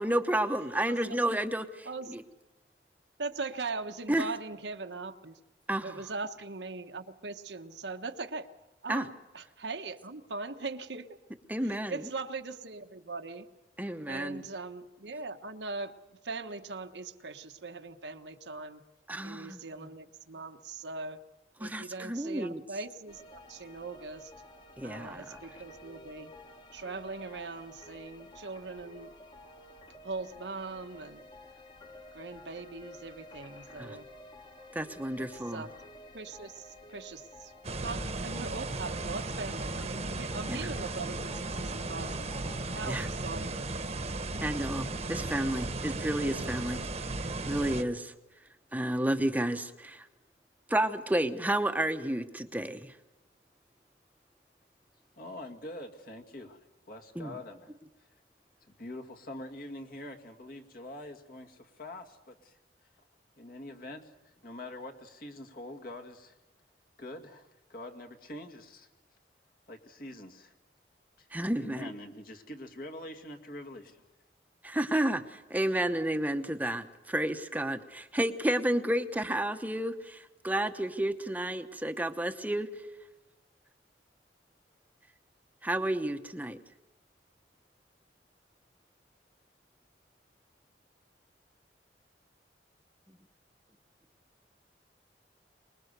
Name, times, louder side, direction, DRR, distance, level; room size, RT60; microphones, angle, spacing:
voice 1, 0.0-1.7 2.1-2.2 4.1-4.3 5.7-6.0 8.9-9.1 11.5-12.0 13.8-14.4 19.1-19.6 21.6-22.6 24.8-25.4 33.8-34.0 34.7-35.6 40.5-40.7 42.9-43.1 44.4-46.8 47.5-48.1 48.7-50.0 50.7-52.8 57.2-57.3 71.3-71.9 74.6-75.2 75.5-80.2 80.4-82.7 85.6-86.6, right 1 dB, 10° right, 8 dB, 0.9 m, -31 dB
voice 2, 0.8-1.2 1.8-2.2 3.2-5.4 5.8-8.5 8.8-11.2 11.6-13.5 14.1-18.8 19.2-21.2 21.6-24.3 24.8-26.3 26.7-29.1 30.0-31.2 32.1-34.1 35.2-35.7 36.1-42.2 42.7-44.0, right 3 dB, 85° right, 7 dB, 1.2 m, -40 dB
sound 1, 23.1-42.9, left 1 dB, 25° left, 1.4 m, -51 dB
sound 2, 37.6-47.8, right 2 dB, 35° right, 1.2 m, -36 dB
voice 3, 55.2-56.6 56.9-57.7 58.7-62.6 63.4-66.3 67.0-68.9 69.7-70.5 71.2-71.3 71.6-74.0, left 1 dB, 55° left, 3 dB, 2.2 m, -45 dB
24.5 x 21.5 x 6.8 m, 1.1 s
head